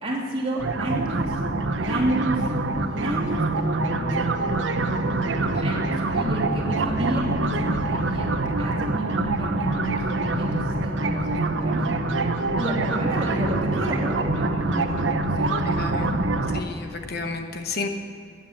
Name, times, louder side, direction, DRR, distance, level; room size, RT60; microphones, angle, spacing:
voice 1, 0.0-1.4 1.7-2.5 2.7-4.4 5.6-11.9 12.6-15.0 15.3-15.9, right 1 dB, 30° right, -4 dB, 3.1 m, -30 dB
sound 1, 0.6-16.6, right 2 dB, 70° right, 0.9 m, -25 dB
voice 2, 15.6-16.1 16.5-17.9, left 3 dB, 55° left, 5 dB, 1.0 m, -31 dB
14.5 x 9.1 x 6.9 m, 2.5 s
head